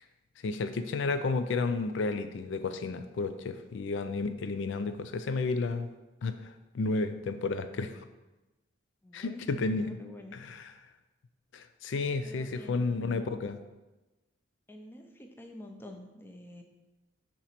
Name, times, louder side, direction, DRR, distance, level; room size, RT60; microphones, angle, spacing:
voice 1, 0.4-5.9 6.2-8.0 9.1-10.0 10.3-10.7 11.5-13.6, left 3 dB, 70° left, 10 dB, 0.4 m, -32 dB
voice 2, 9.0-9.4 9.8-10.4 12.2-13.3 14.7-16.6, left 1 dB, 10° left, 3 dB, 0.5 m, -48 dB
6.9 x 3.0 x 5.8 m, 1.1 s
head